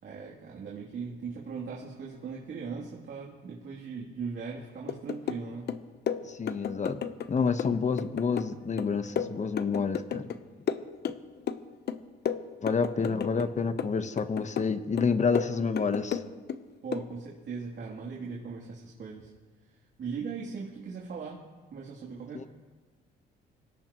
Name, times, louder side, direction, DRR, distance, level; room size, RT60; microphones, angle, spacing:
voice 1, 0.0-5.7 16.8-19.3 20.0-21.4 21.7-22.5, right 5 dB, 60° right, -4 dB, 3.0 m, -39 dB
sound 1, 4.9-5.4 5.7-7.3 7.6-10.4 10.7-11.6 11.9-13.5 13.8-14.7 15.0-16.6 16.9-17.1, left 8 dB, 55° left, 0.8 m, -33 dB
voice 2, 6.3-7.0 7.3-10.3 12.6-16.2 22.3-22.4, left 5 dB, 35° left, 10 dB, 1.1 m, -28 dB
25.0 x 17.0 x 3.1 m, 1.4 s
cardioid pair, 90°, 20 cm